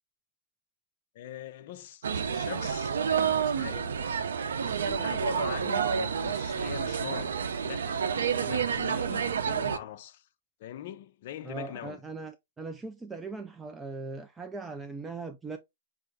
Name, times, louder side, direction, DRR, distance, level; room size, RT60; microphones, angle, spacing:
voice 1, 1.1-4.0 4.6-10.3 10.6-12.0, left 11 dB, 50° left, 0.5 m, -42 dB
sound 1, 2.0-9.8, right 7 dB, 85° right, 0.6 m, -29 dB
voice 2, 11.4-15.6, right 3 dB, 10° right, 0.3 m, -39 dB
5.5 x 2.5 x 3.5 m
hypercardioid pair, 150°, 0 cm